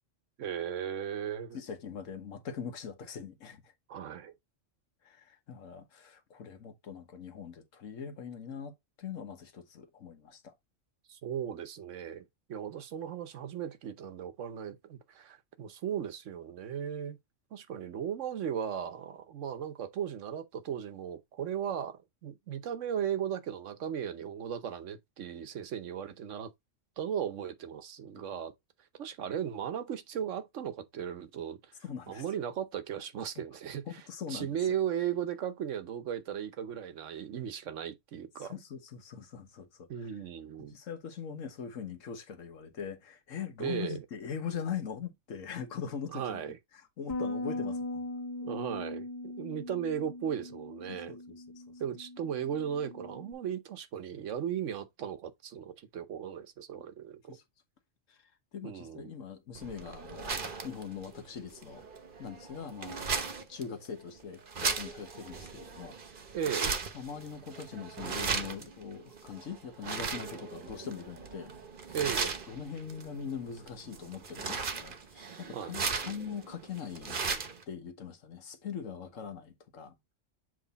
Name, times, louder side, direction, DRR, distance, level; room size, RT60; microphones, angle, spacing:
voice 1, 0.4-1.6 3.9-4.3 11.1-17.2 17.5-26.5 27.0-28.5 29.0-31.7 32.1-33.8 34.3-38.5 39.9-40.7 43.6-44.0 46.1-46.6 48.4-51.1 51.8-57.4 58.6-59.1 66.3-66.8 71.9-72.4 75.5-75.8, right 9 dB, 75° right, 1.2 m, -36 dB
voice 2, 1.5-3.7 5.0-10.5 31.8-32.2 33.3-33.4 33.9-34.7 38.4-40.1 40.6-46.4 47.0-48.1 50.9-51.6 56.7-56.8 57.3-57.4 58.1-61.8 62.2-63.1 63.5-66.0 66.9-71.5 71.9-72.0 72.5-77.2 77.7-80.0, left 7 dB, 90° left, 1.5 m, -42 dB
Bass guitar, 47.1-53.3, left 2 dB, 20° left, 1.6 m, -40 dB
sound 1, 59.5-77.6, right 5 dB, 45° right, 1.1 m, -37 dB
7.6 x 3.2 x 4.0 m
omnidirectional pair, 1.3 m